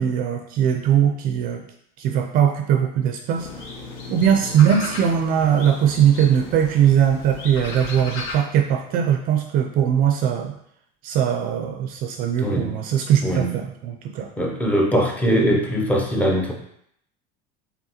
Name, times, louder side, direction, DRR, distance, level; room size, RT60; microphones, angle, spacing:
voice 1, 0.0-1.6 2.0-3.5 4.1-10.5 11.0-14.3, right 9 dB, 45° right, 4 dB, 0.4 m, -20 dB
sound 1, 3.3-8.4, left 3 dB, 65° left, 1.0 m, -35 dB
voice 2, 12.4-12.8 13.2-13.6 14.4-16.5, equal, 5° left, 1 dB, 0.6 m, -21 dB
4.6 x 3.4 x 2.9 m, 0.71 s
cardioid pair, 150°, 21 cm